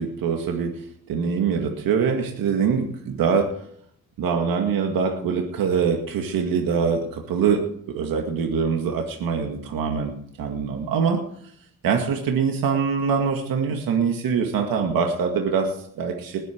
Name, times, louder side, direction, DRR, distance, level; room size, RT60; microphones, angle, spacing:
voice 1, 0.0-3.6 4.2-11.2 11.8-16.4, right 6 dB, 90° right, 3 dB, 2.0 m, -24 dB
20.0 x 9.0 x 4.6 m, 0.65 s
cardioid pair, 80°, 34 cm